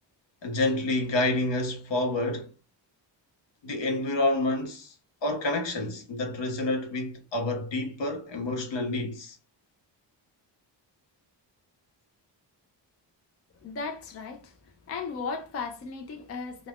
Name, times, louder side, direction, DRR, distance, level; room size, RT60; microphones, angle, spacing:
voice 1, 0.4-2.5 3.6-4.9 5.2-9.4, left 2 dB, 75° left, 0.9 m, -28 dB
voice 2, 13.6-14.5 14.9-16.7, left 4 dB, 35° left, 0.4 m, -36 dB
2.3 x 2.3 x 3.4 m
wide cardioid pair, 180°, 44 cm